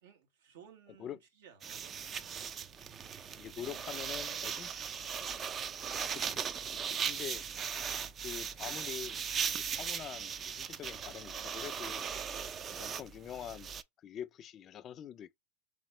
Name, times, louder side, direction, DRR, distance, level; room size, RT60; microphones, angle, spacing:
voice 1, 0.0-2.1 3.5-4.9, right 7 dB, 75° right, 1.6 m, -58 dB
sound 1, 1.6-13.8, right 7 dB, 30° right, 0.4 m, -38 dB
voice 2, 3.3-4.7 6.0-7.4 8.2-9.2 9.7-12.1 12.7-13.7 14.0-15.4, left 9 dB, 35° left, 0.5 m, -45 dB
3.6 x 2.9 x 4.3 m
hypercardioid pair, 120°, 0 cm